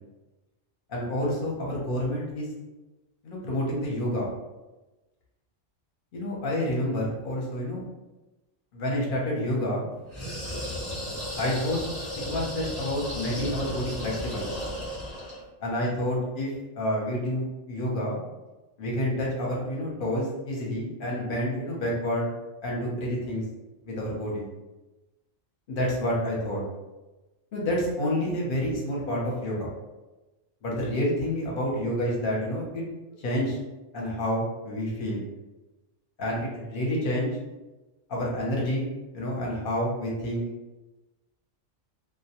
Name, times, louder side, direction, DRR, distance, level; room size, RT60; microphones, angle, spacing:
voice 1, 0.9-2.5 3.2-4.3 6.1-7.8 8.7-9.8 11.4-11.8 12.2-14.5 15.6-18.2 18.8-22.3 22.6-23.4 23.8-24.5 25.7-26.6 27.5-29.7 30.6-32.8 33.2-33.6 33.9-35.2 36.2-37.3 38.1-40.4, left 1 dB, 50° left, -3 dB, 0.7 m, -29 dB
sound 1, 10.1-15.4, equal, 15° left, 0.9 m, -34 dB
2.1 x 2.1 x 2.8 m, 1.1 s
omnidirectional pair, 1.4 m